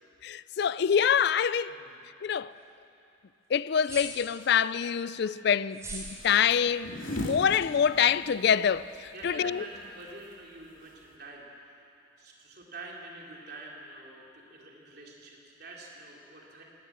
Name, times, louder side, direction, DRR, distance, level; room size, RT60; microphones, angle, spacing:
voice 1, 0.2-1.7 2.2-2.5 3.5-9.6, left 7 dB, 55° left, 0.4 m, -26 dB
sound 1, 3.8-4.5 5.7-6.2, right 3 dB, 15° right, 3.0 m, -40 dB
sound 2, 6.0-11.2, left 1 dB, 80° left, 2.8 m, -40 dB
voice 2, 9.1-11.8 12.2-16.6, right 2 dB, 50° right, 3.4 m, -46 dB
19.0 x 18.0 x 7.5 m
head